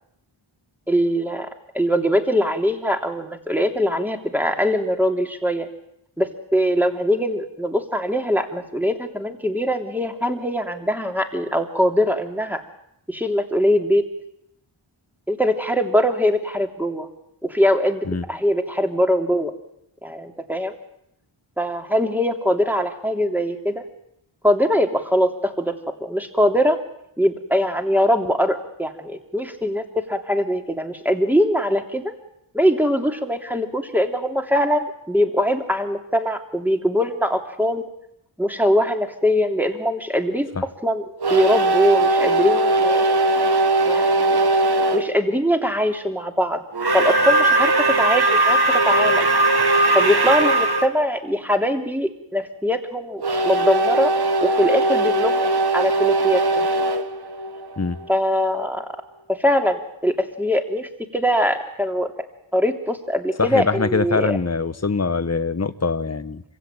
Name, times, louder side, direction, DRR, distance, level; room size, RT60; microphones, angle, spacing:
voice 1, 0.9-1.5 1.7-5.7 6.2-12.6 13.1-14.0 15.3-17.1 17.4-19.5 20.0-20.7 21.6-23.8 24.4-25.7 26.0-26.8 27.2-32.1 32.5-37.9 38.4-40.5 40.8-41.0 41.3-43.2 43.8-44.5 44.9-46.6 46.9-49.3 49.9-54.1 54.4-56.7 58.1-58.8 59.3-62.1 62.5-64.4, equal, 5° right, 5 dB, 3.0 m, -22 dB
sound 1, 41.2-45.1 46.7-50.9 53.2-58.1, right 2 dB, 50° right, 1.8 m, -19 dB
voice 2, 63.4-66.4, left 4 dB, 30° left, 13 dB, 1.3 m, -23 dB
25.5 x 16.0 x 9.0 m, 0.79 s
wide cardioid pair, 55°, 50 cm